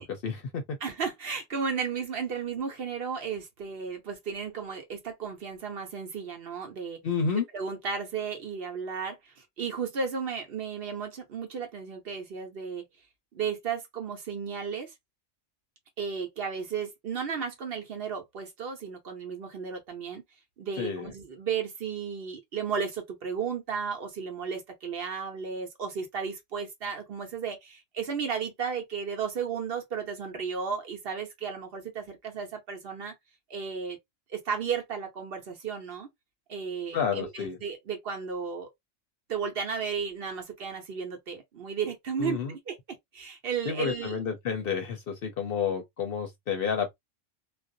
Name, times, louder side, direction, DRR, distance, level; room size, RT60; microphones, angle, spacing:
voice 1, 0.0-0.8 7.0-7.4 20.8-21.1 36.9-37.6 42.2-42.5 43.7-46.9, left 6 dB, 60° left, 0.7 m, -30 dB
voice 2, 0.8-7.0 7.5-12.8 13.3-14.9 16.0-20.2 20.6-33.1 33.5-34.0 34.3-36.1 36.5-38.7 39.3-42.8 43.1-44.2, right 6 dB, 55° right, 0.8 m, -34 dB
2.4 x 2.0 x 2.5 m
omnidirectional pair, 1.3 m